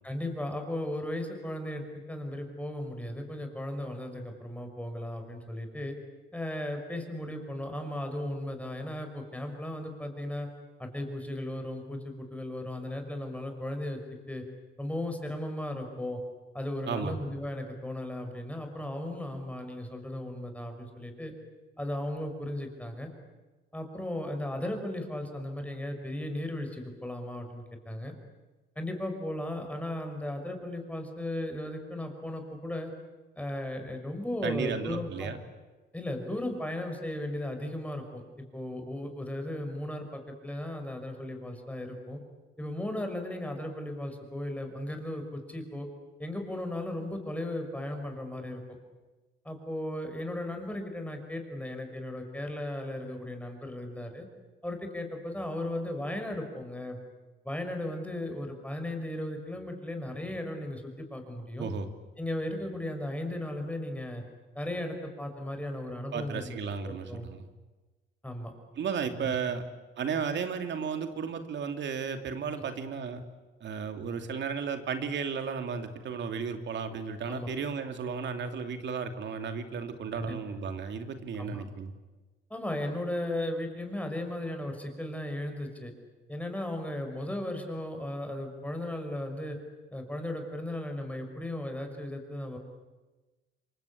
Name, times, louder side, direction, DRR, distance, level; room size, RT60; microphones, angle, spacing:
voice 1, 0.0-6.0 6.3-10.5 10.8-14.0 14.3-14.4 14.8-16.2 16.5-21.3 21.8-23.1 23.7-28.1 28.8-32.9 33.4-35.3 35.9-42.2 42.6-45.9 46.2-48.8 49.4-54.3 54.6-57.0 57.4-61.7 62.2-64.2 64.5-66.6 66.9-67.3 68.2-68.5 69.0-69.6 72.6-72.7 77.3-77.5 80.1-80.4 81.4-81.7 82.5-85.9 86.3-89.6 89.9-92.6, left 1 dB, 5° left, 5 dB, 5.8 m, -36 dB
voice 2, 16.9-17.2 34.4-35.4 61.6-61.9 66.1-67.5 68.8-69.6 70.0-73.2 73.6-81.9, right 6 dB, 65° right, 7 dB, 2.9 m, -34 dB
28.5 x 23.5 x 8.6 m, 1.2 s
cardioid pair, 90°, 20 cm